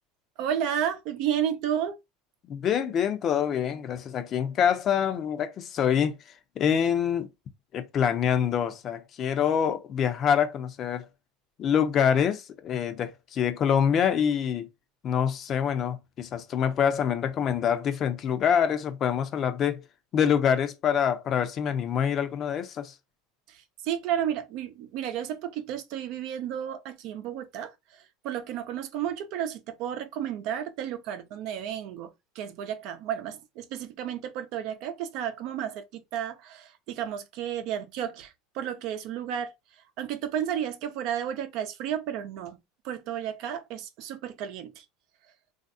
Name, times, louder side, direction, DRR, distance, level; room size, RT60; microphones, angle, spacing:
voice 1, 0.4-2.0 23.5-39.5 40.0-42.6 42.8-44.8, right 9 dB, 60° right, 0.6 m, -32 dB
voice 2, 2.4-6.2 6.6-7.3 7.7-11.1 11.6-14.7 15.0-19.8 20.1-22.9, left 8 dB, 40° left, 0.6 m, -25 dB
3.2 x 2.5 x 2.6 m
supercardioid pair, 105°, 0 cm